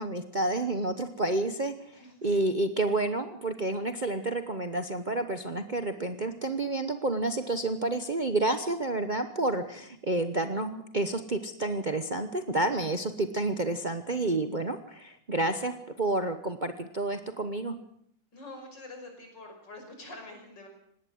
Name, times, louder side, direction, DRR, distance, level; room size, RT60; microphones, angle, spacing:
voice 1, 0.0-17.8, right 2 dB, 30° right, 8 dB, 0.9 m, -30 dB
voice 2, 1.9-2.4 18.3-20.7, left 2 dB, 70° left, 3 dB, 6.2 m, -46 dB
19.0 x 18.0 x 7.9 m, 0.69 s
omnidirectional pair, 2.0 m